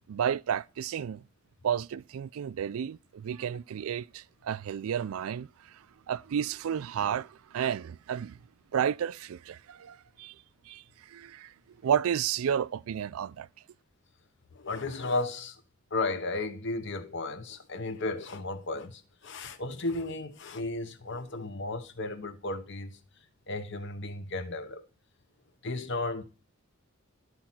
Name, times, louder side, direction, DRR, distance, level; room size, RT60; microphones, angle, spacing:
voice 1, 0.1-1.2 1.6-8.4 8.7-13.5, right 8 dB, 85° right, 0.4 m, -32 dB
voice 2, 14.5-15.6 15.9-23.0 23.5-24.8 25.6-26.2, left 2 dB, 60° left, 1.0 m, -34 dB
12.5 x 4.3 x 5.9 m
head